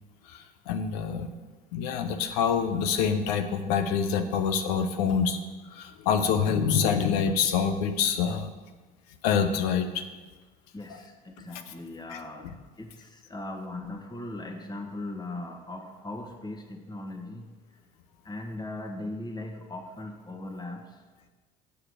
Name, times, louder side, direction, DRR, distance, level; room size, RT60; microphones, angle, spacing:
voice 1, 0.3-1.3 1.7-5.4 5.7-8.5 9.2-10.1 11.4-11.5, left 6 dB, 80° left, 8 dB, 0.8 m, -26 dB
voice 2, 10.7-12.5 12.8-17.5 18.2-21.0, left 2 dB, 20° left, 3 dB, 1.6 m, -39 dB
7.9 x 6.6 x 6.5 m, 1.3 s
hypercardioid pair, 70°, 20 cm